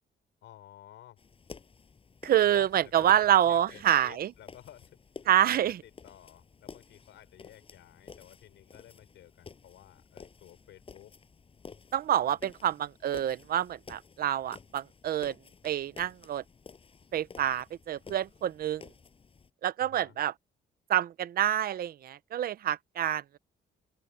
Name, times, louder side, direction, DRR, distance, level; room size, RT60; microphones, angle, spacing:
voice 1, 0.4-1.2 2.4-5.0 5.4-11.1 12.3-12.7 19.8-20.2, left 12 dB, 85° left, 5.0 m, -53 dB
sound 1, 1.2-19.5, left 5 dB, 30° left, 7.2 m, -52 dB
voice 2, 2.2-4.3 5.3-5.8 11.9-15.3 15.6-16.4 17.1-18.8 19.6-20.3 20.9-23.4, right 11 dB, 55° right, 0.7 m, -27 dB
open air
cardioid pair, 150°, 19 cm